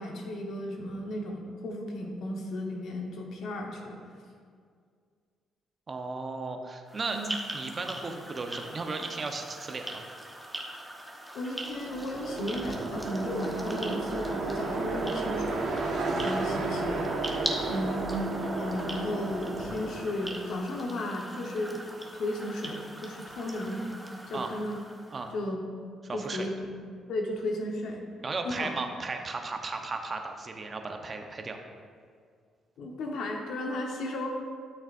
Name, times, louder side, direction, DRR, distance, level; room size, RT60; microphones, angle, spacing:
voice 1, 0.0-4.0 7.1-7.3 11.3-15.6 16.2-17.1 17.7-18.3 18.6-21.8 22.1-23.9 24.3-24.8 25.3-25.6 26.1-26.7 27.1-28.0 28.4-28.7 32.8-34.3, left 1 dB, 75° left, 1 dB, 1.1 m, -34 dB
voice 2, 5.9-7.2 7.5-10.0 24.3-24.5 25.1-25.3 26.0-26.5 28.2-31.6, right 3 dB, 35° right, 4 dB, 0.9 m, -35 dB
sound 1, 6.9-25.3, right 1 dB, 5° right, 1.1 m, -41 dB
sound 2, 11.6-20.6, right 3 dB, 70° right, 1.3 m, -33 dB
12.5 x 6.2 x 2.6 m, 2.1 s
cardioid pair, 90°, 0 cm